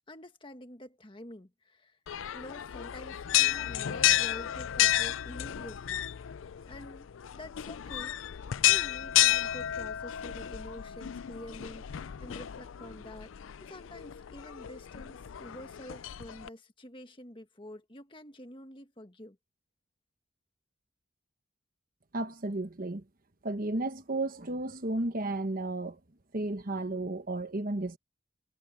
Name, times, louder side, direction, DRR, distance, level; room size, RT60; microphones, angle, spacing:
voice 1, 0.1-2.0 2.3-6.0 6.7-7.1 7.3-8.2 8.6-19.4, left 1 dB, 25° left, 1.7 m, -47 dB
sound 1, 2.1-16.5, left 13 dB, 90° left, 0.4 m, -31 dB
voice 2, 22.1-23.0 23.4-26.0 26.3-28.0, right 2 dB, 45° right, 1.2 m, -33 dB
head